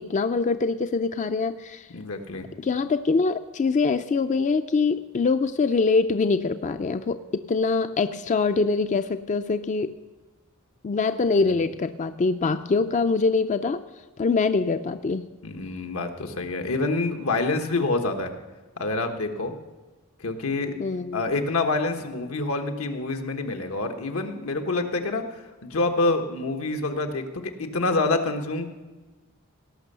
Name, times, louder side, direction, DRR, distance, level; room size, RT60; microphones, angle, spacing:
voice 1, 0.0-1.9 2.6-9.9 10.8-13.8 14.2-15.3 20.8-21.2, left 4 dB, 35° left, 10 dB, 0.4 m, -24 dB
voice 2, 1.9-2.5 11.2-11.6 15.4-18.3 18.8-19.5 20.2-20.8 21.1-25.2 25.6-28.7, left 3 dB, 85° left, 5 dB, 1.2 m, -27 dB
18.0 x 6.1 x 6.7 m, 1.2 s
head